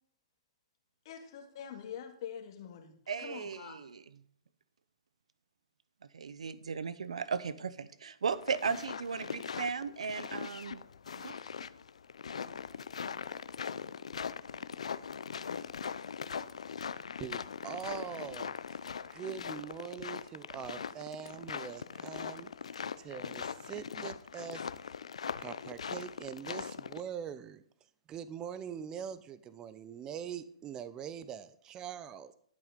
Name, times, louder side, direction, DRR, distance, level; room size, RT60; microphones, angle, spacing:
voice 1, 1.0-2.9 3.2-3.8, left 8 dB, 50° left, 5 dB, 2.2 m, -45 dB
voice 2, 3.1-4.0 6.1-10.8 11.2-11.4, right 6 dB, 90° right, 16 dB, 0.6 m, -36 dB
sound 1, 8.3-27.0, left 6 dB, 85° left, 0.5 m, -41 dB
voice 3, 17.2-24.7 25.4-27.6 28.1-32.3, right 8 dB, 20° right, 13 dB, 0.6 m, -43 dB
12.0 x 6.5 x 5.1 m, 0.63 s
hypercardioid pair, 145°, 3 cm